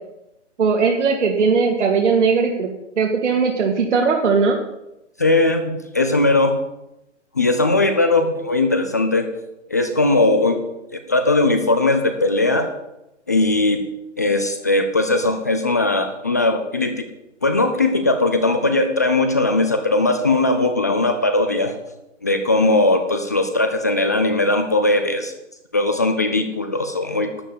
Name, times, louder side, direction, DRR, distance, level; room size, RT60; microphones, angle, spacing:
voice 1, 0.6-2.7 3.0-4.6, right 5 dB, 70° right, -1 dB, 2.3 m, -18 dB
voice 2, 5.2-6.6 7.4-9.3 9.7-10.6 10.9-12.7 13.3-13.8 14.2-17.0 17.4-21.8 22.2-25.3 25.7-27.3, left 2 dB, 15° left, 7 dB, 0.4 m, -19 dB
12.0 x 7.4 x 8.4 m, 0.90 s
hypercardioid pair, 145°, 37 cm